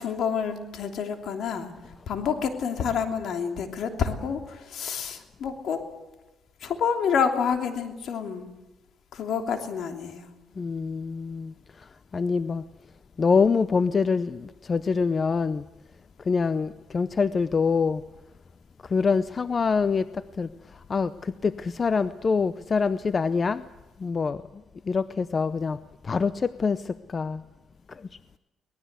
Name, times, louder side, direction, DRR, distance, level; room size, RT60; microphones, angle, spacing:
voice 1, 0.0-1.7 2.1-5.8 6.6-8.5 9.1-10.3, left 6 dB, 70° left, 3.1 m, -28 dB
voice 2, 10.6-12.6 13.2-15.6 16.2-18.0 18.8-23.6 24.0-24.4 24.8-25.8 26.0-27.4 27.9-28.1, left 5 dB, 35° left, 0.7 m, -25 dB
23.5 x 18.5 x 8.2 m
cardioid pair, 90°, 0 cm